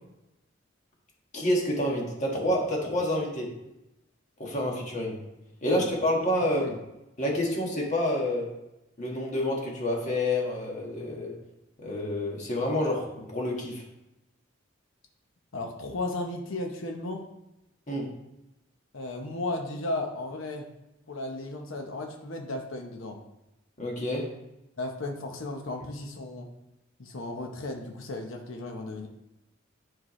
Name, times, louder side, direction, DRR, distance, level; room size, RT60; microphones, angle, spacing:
voice 1, 1.3-3.5 4.4-5.2 5.6-6.7 7.2-8.5 9.0-11.3 11.8-13.8 17.9-18.1 23.8-24.3, left 1 dB, 35° left, -2 dB, 1.6 m, -28 dB
voice 2, 15.5-17.2 18.9-20.7 21.1-23.2 24.8-26.5 27.0-29.1, left 2 dB, 80° left, 3 dB, 0.8 m, -35 dB
9.8 x 4.6 x 3.1 m, 0.93 s
head